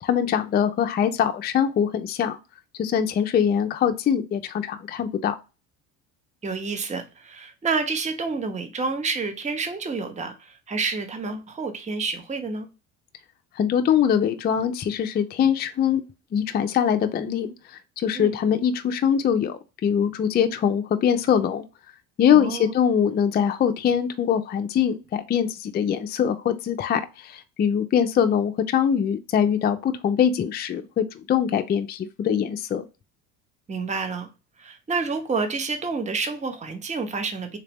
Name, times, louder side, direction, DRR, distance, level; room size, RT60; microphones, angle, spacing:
voice 1, 0.0-2.4 2.8-5.3 13.6-16.0 16.3-17.5 18.0-21.6 22.2-32.9, left 8 dB, 25° left, 0.4 m, -23 dB
voice 2, 6.4-12.7 18.1-18.4 22.3-22.7 33.7-34.3 34.6-37.6, right 4 dB, 15° right, 0.7 m, -29 dB
3.5 x 2.8 x 3.4 m
hypercardioid pair, 70°, 44 cm